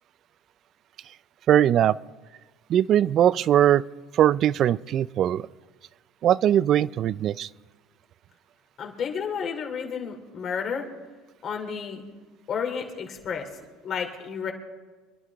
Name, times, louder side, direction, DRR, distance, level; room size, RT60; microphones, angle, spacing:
voice 1, 1.5-2.0 2.7-3.8 4.1-5.5 6.2-7.5, right 11 dB, 50° right, 21 dB, 0.4 m, -20 dB
voice 2, 8.8-10.9 11.4-12.0 12.5-13.5 13.8-14.5, left 6 dB, 45° left, 2 dB, 2.8 m, -31 dB
26.0 x 11.0 x 3.5 m, 1.3 s
supercardioid pair, 110°, 0 cm